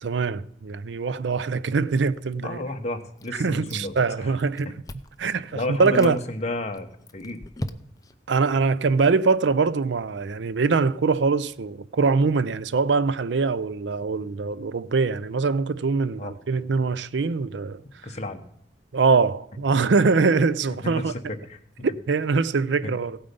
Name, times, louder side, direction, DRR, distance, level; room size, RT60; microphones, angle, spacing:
voice 1, 0.0-2.6 3.3-4.7 5.2-6.2 8.3-17.8 18.9-21.1 22.1-23.2, right 4 dB, 80° right, 0.5 m, -23 dB
voice 2, 2.4-4.3 4.6-4.7 5.5-6.9 7.1-7.4 16.2-16.3 18.0-18.4 20.8-21.9 22.8-22.9, left 1 dB, 35° left, 1.2 m, -32 dB
Chewing mastication, 3.2-4.1 4.4-5.2 5.7-6.2 6.7-8.2, left 1 dB, 20° left, 0.6 m, -38 dB
16.5 x 8.7 x 5.4 m
head